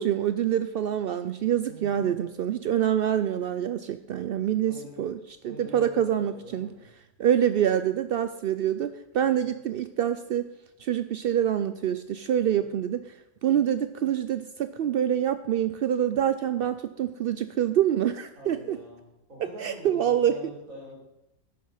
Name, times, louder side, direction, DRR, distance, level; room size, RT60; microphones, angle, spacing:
voice 1, 0.0-5.2 5.4-6.7 7.2-10.4 10.8-13.0 13.4-18.8 19.6-20.3, right 10 dB, 80° right, 11 dB, 0.5 m, -26 dB
voice 2, 1.6-2.2 4.6-5.0 5.4-6.9 7.5-7.6 9.3-9.5 12.6-12.8 18.3-21.0, equal, 65° right, -3 dB, 4.7 m, -45 dB
11.5 x 9.4 x 5.5 m, 0.89 s
omnidirectional pair, 1.5 m